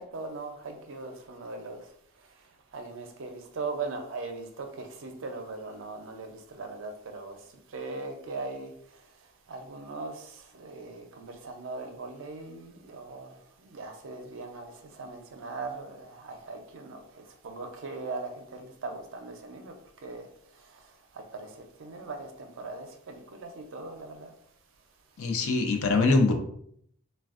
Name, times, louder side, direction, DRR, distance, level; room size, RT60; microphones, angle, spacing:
voice 1, 0.1-1.9 2.7-9.0 9.5-19.7 20.0-20.3 20.6-20.9 21.1-24.3, right 3 dB, 60° right, 0.5 m, -40 dB
voice 2, 25.2-26.3, left 3 dB, 75° left, 0.5 m, -23 dB
3.3 x 2.2 x 2.4 m
head